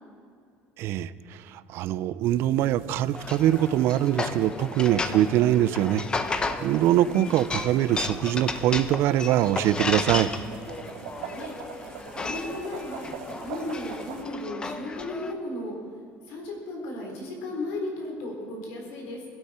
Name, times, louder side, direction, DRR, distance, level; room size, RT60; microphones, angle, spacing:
voice 1, 0.8-10.3, right 12 dB, 55° right, 17 dB, 0.5 m, -23 dB
sound 1, 2.2-14.2, right 6 dB, 85° right, 1.6 m, -43 dB
sound 2, 3.1-15.3, left 4 dB, 20° left, 0.7 m, -34 dB
voice 2, 11.1-15.8 16.3-19.3, left 2 dB, 85° left, 0 dB, 3.9 m, -35 dB
21.0 x 12.5 x 4.4 m, 2.3 s
cardioid pair, 150°, 5 cm